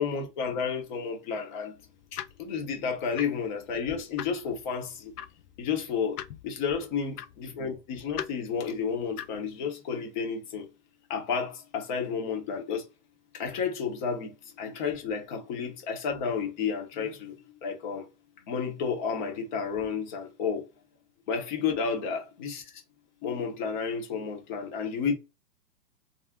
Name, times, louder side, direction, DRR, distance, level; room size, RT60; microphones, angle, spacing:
voice 1, 0.0-1.7 2.1-5.1 5.6-10.7 11.1-12.9 13.3-18.1 18.5-20.7 21.3-22.8 23.2-25.1, left 6 dB, 30° left, 0.8 m, -31 dB
sound 1, 1.8-9.5, left 10 dB, 70° left, 0.5 m, -44 dB
2.4 x 2.1 x 3.4 m
hypercardioid pair, 150°, 48 cm